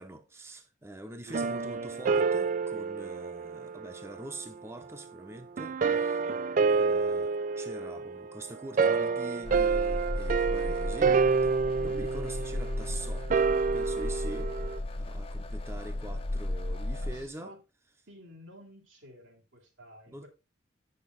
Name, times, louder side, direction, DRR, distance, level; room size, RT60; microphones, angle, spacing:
voice 1, 0.0-6.2 6.7-17.6 20.1-20.3, right 1 dB, 15° right, 0.8 m, -44 dB
sound 1, 1.3-4.2 5.6-14.8, right 5 dB, 40° right, 0.3 m, -28 dB
sound 2, 9.4-17.3, left 1 dB, 30° left, 0.7 m, -35 dB
voice 2, 17.0-17.6 18.1-20.3, equal, 85° right, 3.4 m, -52 dB
8.1 x 6.6 x 4.0 m
head